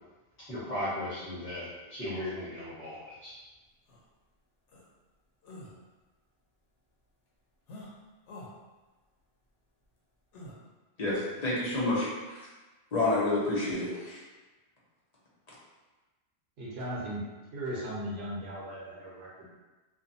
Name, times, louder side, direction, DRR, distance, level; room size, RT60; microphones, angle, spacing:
voice 1, 0.4-3.4, left 1 dB, 10° left, -12 dB, 0.9 m, -37 dB
sound 1, 3.9-4.0 4.7-4.8 5.4-5.7 7.7-7.9 8.3-8.5 10.3-10.5, left 1 dB, 90° left, 0.9 m, -46 dB
voice 2, 11.0-12.5 12.9-14.2 15.5-15.6, left 2 dB, 40° left, -7 dB, 0.7 m, -29 dB
voice 3, 16.6-17.2 17.5-19.5, right 1 dB, 65° right, -6 dB, 0.9 m, -37 dB
2.5 x 2.2 x 2.6 m, 1.2 s
omnidirectional pair, 1.2 m